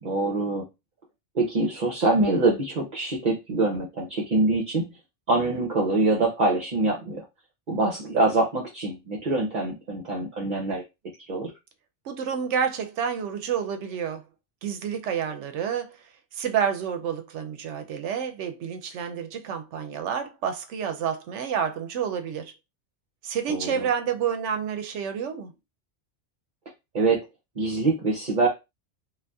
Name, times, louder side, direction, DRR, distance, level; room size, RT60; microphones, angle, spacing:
voice 1, 0.0-0.7 1.3-4.9 5.3-7.2 7.7-10.8 11.3-11.5 23.5-23.9 26.9-27.2 27.6-28.5, right 2 dB, 45° right, 0.8 m, -24 dB
voice 2, 12.0-14.2 14.6-22.5 23.2-25.5, right 7 dB, 75° right, 0.9 m, -29 dB
2.6 x 2.4 x 3.4 m
omnidirectional pair, 1.2 m